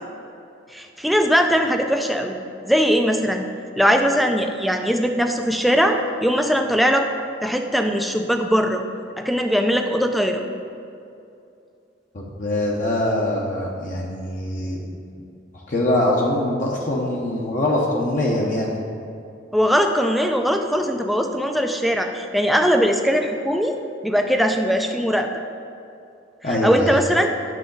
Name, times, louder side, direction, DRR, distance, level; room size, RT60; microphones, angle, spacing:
voice 1, 0.7-2.4 2.7-3.5 3.8-7.1 7.4-8.8 9.2-10.4 19.5-23.8 24.0-25.4 26.6-27.3, equal, ahead, 4 dB, 0.4 m, -20 dB
voice 2, 12.1-14.8 15.5-18.8 26.4-27.0, left 1 dB, 45° left, -3 dB, 0.9 m, -23 dB
9.3 x 6.3 x 3.9 m, 2.6 s
head